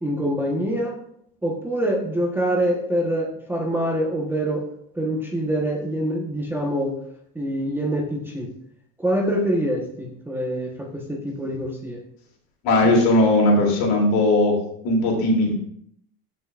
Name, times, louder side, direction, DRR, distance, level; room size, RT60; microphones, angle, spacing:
voice 1, 0.0-0.9 1.4-4.6 5.0-6.9 7.3-8.5 9.0-12.0, right 1 dB, 5° right, -1 dB, 1.1 m, -25 dB
voice 2, 12.6-14.6 14.8-15.5, left 2 dB, 60° left, 0 dB, 3.0 m, -18 dB
13.5 x 5.9 x 2.5 m, 0.69 s
supercardioid pair, 135°, 41 cm